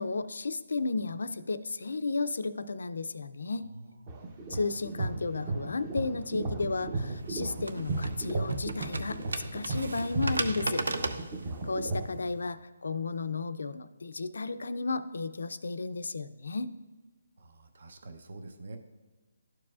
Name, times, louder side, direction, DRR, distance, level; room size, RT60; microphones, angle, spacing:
voice 1, 0.0-3.7 4.5-10.8 11.6-16.7, left 3 dB, 80° left, 12 dB, 0.4 m, -33 dB
voice 2, 3.8-4.3 17.4-18.8, right 2 dB, 55° right, 7 dB, 0.8 m, -48 dB
sound 1, 4.1-12.0, right 3 dB, 25° right, 0.7 m, -35 dB
sound 2, 7.0-12.4, right 2 dB, 85° right, 0.6 m, -36 dB
12.0 x 4.7 x 2.4 m, 1.3 s
hypercardioid pair, 170°, 0 cm